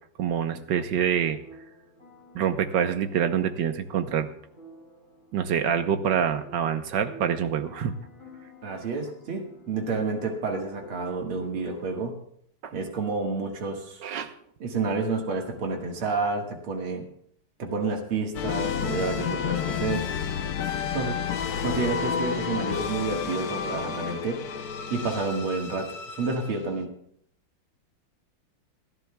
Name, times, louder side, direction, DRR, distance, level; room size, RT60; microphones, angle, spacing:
voice 1, 0.2-1.4 2.3-4.3 5.3-7.9 12.6-12.7 14.0-14.3, right 8 dB, 65° right, 8 dB, 1.4 m, -26 dB
sound 1, 0.9-11.6, equal, 35° right, 6.7 m, -51 dB
voice 2, 8.6-12.1 12.7-14.0 14.6-17.0 17.6-20.1 20.9-21.2 21.6-24.6 24.9-26.9, right 3 dB, 80° right, 1 dB, 2.5 m, -29 dB
sound 2, 18.3-26.8, left 7 dB, 60° left, 1.1 m, -31 dB
28.0 x 10.5 x 2.3 m, 0.68 s
omnidirectional pair, 2.3 m